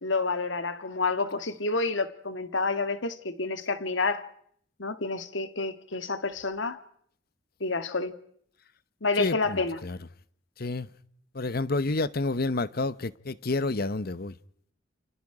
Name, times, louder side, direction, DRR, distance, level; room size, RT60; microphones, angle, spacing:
voice 1, 0.0-4.3 4.8-6.8 7.6-8.2 9.0-9.8, left 3 dB, 80° left, 1.8 m, -29 dB
voice 2, 9.2-10.0 10.6-10.9 11.3-14.4, left 3 dB, 55° left, 0.9 m, -29 dB
29.0 x 28.0 x 4.9 m
head